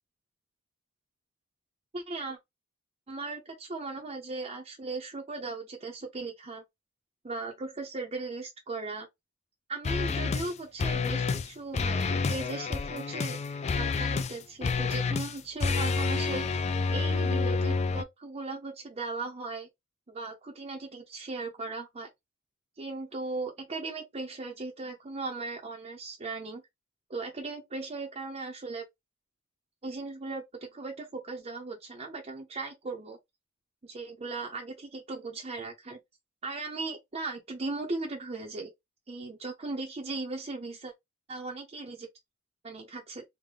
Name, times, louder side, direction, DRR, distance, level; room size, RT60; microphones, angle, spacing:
voice 1, 1.9-2.4 3.1-6.6 7.2-9.1 9.7-13.4 13.7-16.6 16.9-19.7 20.1-22.1 22.8-26.6 27.1-28.8 29.8-33.2 33.8-36.0 36.4-38.7 39.1-40.9 41.3-42.1 42.6-43.2, right 3 dB, 30° right, 0.6 m, -37 dB
sound 1, 9.8-10.5 10.8-11.5 11.7-18.0, left 4 dB, 30° left, 0.3 m, -29 dB
3.3 x 2.1 x 3.7 m
head